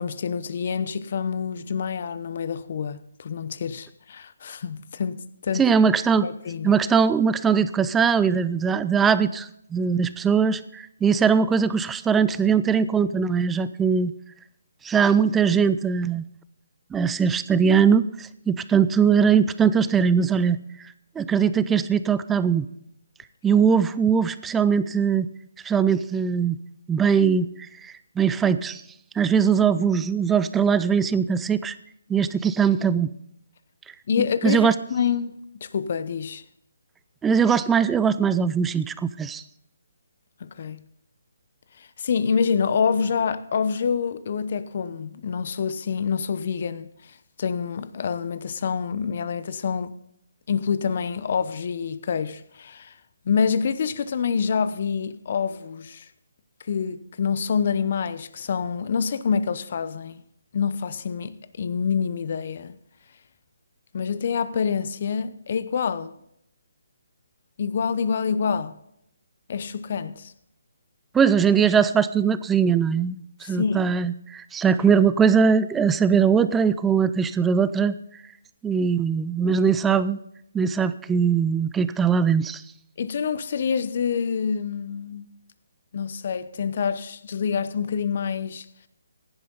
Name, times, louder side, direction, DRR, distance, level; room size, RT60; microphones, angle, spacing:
voice 1, 0.0-5.6 6.2-6.8 34.1-36.4 40.4-40.8 41.8-46.9 47.4-49.9 50.5-52.9 53.3-56.1 56.7-60.2 60.5-62.7 63.9-66.1 67.6-68.8 69.5-70.3 73.4-73.9 83.0-85.3 85.9-88.7, left 6 dB, 50° left, 0.9 m, -27 dB
voice 2, 5.6-6.3 6.6-14.1 14.8-16.2 16.9-20.6 21.2-22.7 23.4-25.3 25.6-26.6 26.9-27.5 27.8-28.8 29.2-31.7 32.1-33.1 34.2-34.7 37.2-39.4 71.1-77.9 78.6-80.2 80.5-82.6, right 6 dB, 10° right, 0.4 m, -21 dB
16.0 x 11.0 x 3.9 m
hypercardioid pair, 160°, 0 cm